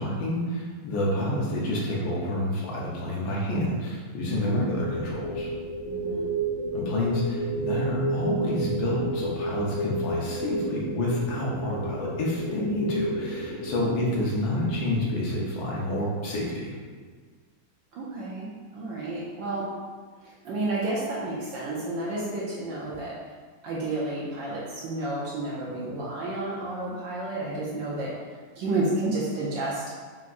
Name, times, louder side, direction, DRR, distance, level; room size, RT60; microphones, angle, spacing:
voice 1, 0.0-5.5 6.7-16.7, left 1 dB, 70° left, -4 dB, 1.6 m, -28 dB
voice 2, 4.3-4.7 5.9-6.3 13.8-14.1 17.9-19.7 20.2-23.1 23.6-28.1 28.6-29.9, right 2 dB, 75° right, -5 dB, 1.4 m, -31 dB
sound 1, 4.4-16.7, right 1 dB, 85° left, 1.7 m, -32 dB
5.8 x 2.9 x 2.5 m, 1.5 s
omnidirectional pair, 2.2 m